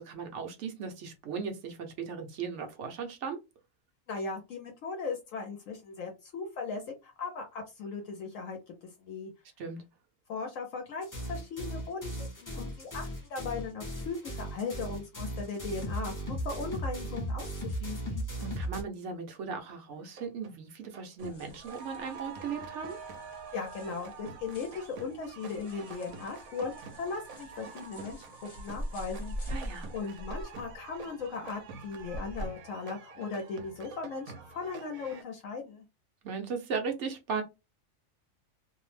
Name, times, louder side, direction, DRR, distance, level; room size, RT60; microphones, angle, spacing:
voice 1, 0.0-3.4 9.6-9.8 18.4-23.0 29.5-29.9 36.2-37.4, right 5 dB, 65° right, 0.9 m, -37 dB
voice 2, 4.1-8.7 9.0-9.3 10.3-18.2 23.5-29.5 29.9-35.8, left 4 dB, 75° left, 1.0 m, -38 dB
sound 1, 11.0-18.8, right 1 dB, 20° left, 0.5 m, -37 dB
sound 2, 20.0-20.6 20.9-35.2, right 5 dB, 90° right, 1.1 m, -47 dB
sound 3, 21.2-32.5, equal, 40° left, 1.1 m, -44 dB
2.6 x 2.0 x 3.1 m
omnidirectional pair, 1.4 m